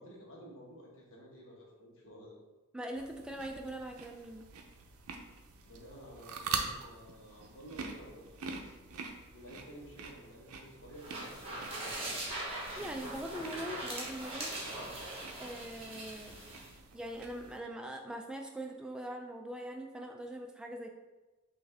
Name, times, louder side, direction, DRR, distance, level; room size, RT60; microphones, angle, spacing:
voice 1, 0.0-2.4 5.6-8.7 9.3-12.4, equal, 60° left, -3 dB, 1.1 m, -52 dB
voice 2, 2.7-4.5 12.8-14.5 15.4-16.3 16.9-20.9, right 1 dB, 5° right, 2 dB, 0.3 m, -42 dB
sound 1, 2.9-17.6, right 5 dB, 75° right, 0.5 m, -45 dB
sound 2, 10.9-16.7, right 1 dB, 25° right, 1.0 m, -41 dB
5.7 x 2.6 x 3.4 m, 1.2 s
head